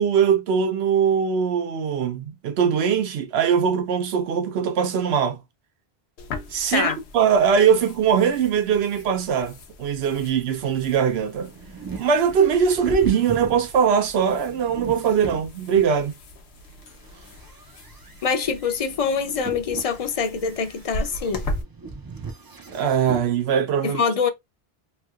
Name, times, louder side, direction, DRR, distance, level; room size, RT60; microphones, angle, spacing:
voice 1, 0.0-5.4 6.5-11.5 12.0-16.1 22.7-24.0, right 7 dB, 80° right, 0.9 m, -21 dB
sound 1, 6.2-21.6, left 1 dB, 80° left, 1.0 m, -39 dB
sound 2, 11.3-16.1 16.6-23.3, right 3 dB, 35° right, 0.3 m, -39 dB
voice 2, 18.2-21.4 23.8-24.3, left 5 dB, 45° left, 0.5 m, -24 dB
3.2 x 2.7 x 2.3 m
omnidirectional pair, 1.0 m